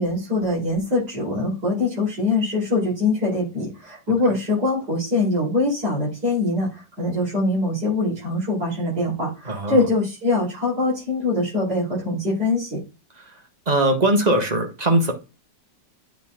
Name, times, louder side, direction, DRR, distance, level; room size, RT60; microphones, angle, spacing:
voice 1, 0.0-12.8, left 2 dB, 55° right, 5.4 m, -23 dB
voice 2, 9.5-9.8 13.7-15.1, right 1 dB, 25° right, 1.2 m, -20 dB
8.8 x 4.6 x 3.8 m
omnidirectional pair, 2.0 m